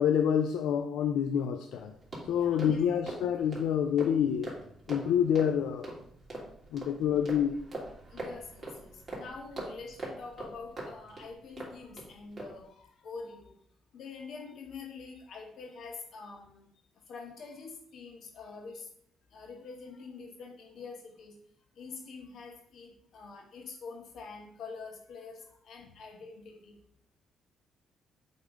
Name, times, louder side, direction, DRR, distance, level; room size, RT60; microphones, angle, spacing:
voice 1, 0.0-1.9 2.3-4.5 4.9-5.9 6.7-7.6, left 8 dB, 90° left, 6 dB, 0.4 m, -27 dB
sound 1, 1.7-12.1 12.4-12.6, right 1 dB, 35° right, 3.0 m, -43 dB
voice 2, 2.3-2.8 8.1-13.6 13.9-16.7 17.1-18.9 19.3-21.4 21.7-26.8, left 4 dB, 65° left, 2 dB, 1.8 m, -46 dB
7.8 x 3.6 x 5.0 m, 0.66 s
cardioid pair, 90°, 0 cm